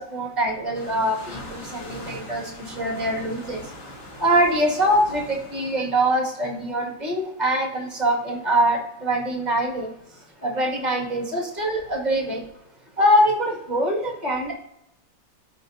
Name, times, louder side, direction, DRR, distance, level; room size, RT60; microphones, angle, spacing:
voice 1, 0.1-2.5 2.8-3.6 4.2-9.9 10.4-12.4 13.0-14.5, right 1 dB, 25° right, 0 dB, 1.9 m, -23 dB
sound 1, 0.7-5.8, left 1 dB, 75° left, 2.6 m, -40 dB
14.0 x 5.4 x 2.7 m, 0.80 s
omnidirectional pair, 2.1 m